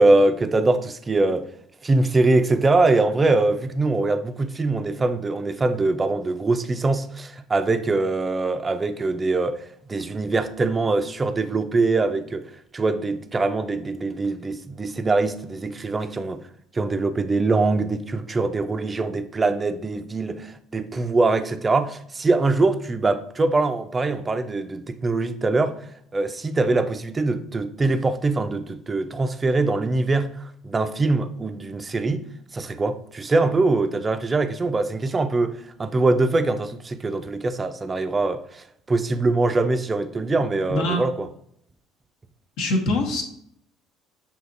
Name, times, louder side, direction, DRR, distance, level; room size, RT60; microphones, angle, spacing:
voice 1, 0.0-1.5 1.8-16.4 16.7-25.8 26.1-32.3 32.5-41.3, right 3 dB, 25° right, 0.3 m, -23 dB
voice 2, 40.7-41.0 42.6-43.2, left 1 dB, 75° left, 0.9 m, -23 dB
6.3 x 2.8 x 2.5 m
supercardioid pair, 100°, 0 cm